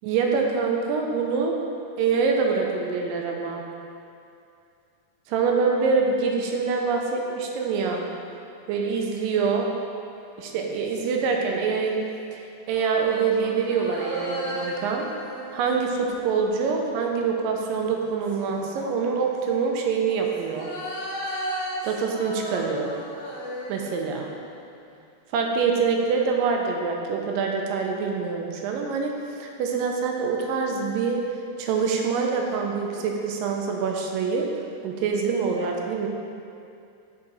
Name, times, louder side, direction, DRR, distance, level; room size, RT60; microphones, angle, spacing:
voice 1, 0.0-1.6 2.0-3.6 5.3-8.1 8.7-9.7 10.4-12.0 12.3-12.4 12.7-15.1 15.5-20.7 21.8-22.9 23.7-24.3 25.3-31.2 31.6-34.5 34.8-36.1, right 5 dB, 85° right, 1 dB, 2.3 m, -25 dB
sound 1, 10.5-11.8 12.7-17.1 17.8-19.1 19.9-24.6 24.9-25.0, equal, 70° left, 2.2 m, -36 dB
5.5 x 4.7 x 3.9 m, 2.6 s
omnidirectional pair, 3.9 m